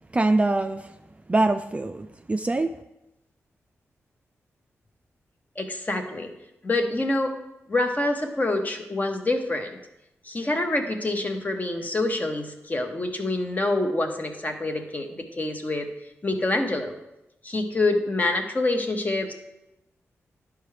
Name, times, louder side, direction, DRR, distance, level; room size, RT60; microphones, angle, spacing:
voice 1, 0.1-0.9 1.3-2.7, right 2 dB, 25° right, 7 dB, 0.4 m, -23 dB
voice 2, 5.6-6.3 6.6-7.4 7.7-9.8 10.2-15.9 16.2-16.9 17.4-19.3, left 2 dB, 30° left, 4 dB, 1.0 m, -26 dB
11.0 x 4.7 x 3.3 m, 0.91 s
cardioid pair, 65°, 5 cm